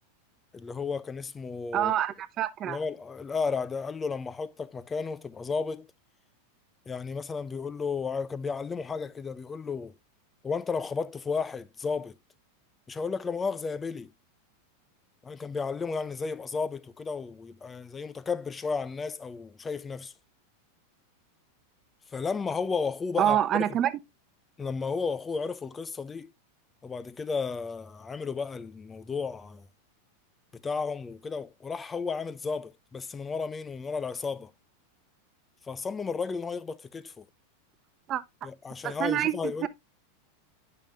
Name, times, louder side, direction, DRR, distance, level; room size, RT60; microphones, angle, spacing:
voice 1, 0.5-1.9 2.6-5.9 6.9-10.0 10.4-12.2 12.9-14.1 15.2-20.1 22.1-23.8 24.6-26.3 26.8-29.7 30.5-34.5 35.6-37.3 38.4-39.7, left 5 dB, 15° left, 0.5 m, -33 dB
voice 2, 1.7-2.8 23.2-23.9 38.1-38.5 38.8-39.7, right 11 dB, 35° right, 0.7 m, -27 dB
9.0 x 5.7 x 2.5 m
hypercardioid pair, 120°, 0 cm